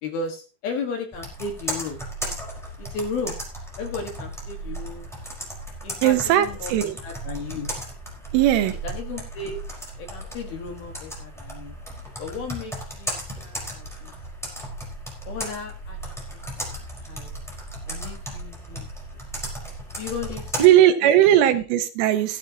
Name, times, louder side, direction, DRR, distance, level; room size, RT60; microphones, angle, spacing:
voice 1, 0.0-2.0 2.8-3.3 3.8-5.1 5.8-7.7 8.8-9.6 10.0-11.8 12.2-13.1 13.4-14.1 15.3-16.7 17.0-17.4 17.9-18.9 19.1-19.2 20.0-20.7 21.3-21.4, left 4 dB, 60° left, 3 dB, 3.1 m, -34 dB
Computer keyboard, 1.1-20.7, right 1 dB, ahead, 3.9 m, -35 dB
voice 2, 6.0-7.0 8.3-8.8 20.6-22.4, right 12 dB, 80° right, 9 dB, 3.6 m, -18 dB
15.5 x 12.5 x 2.9 m, 0.34 s
omnidirectional pair, 5.8 m